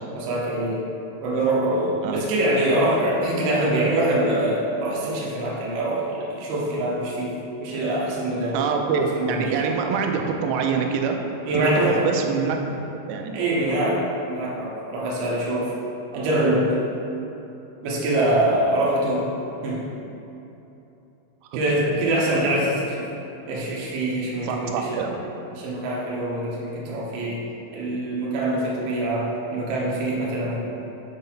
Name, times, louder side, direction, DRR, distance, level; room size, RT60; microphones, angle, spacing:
voice 1, 0.2-0.9 1.2-8.6 8.9-9.7 11.4-12.1 13.3-15.7 16.1-16.7 17.8-19.3 19.6-19.9 21.5-23.1 23.5-25.1 25.5-30.6, right 1 dB, 65° right, -5 dB, 2.3 m, -24 dB
voice 2, 8.5-11.2 11.5-12.8 13.1-13.3 16.1-16.3 24.4-25.2, right 5 dB, 90° right, 3 dB, 3.0 m, -25 dB
5.5 x 5.4 x 5.6 m, 2.9 s
omnidirectional pair, 5.3 m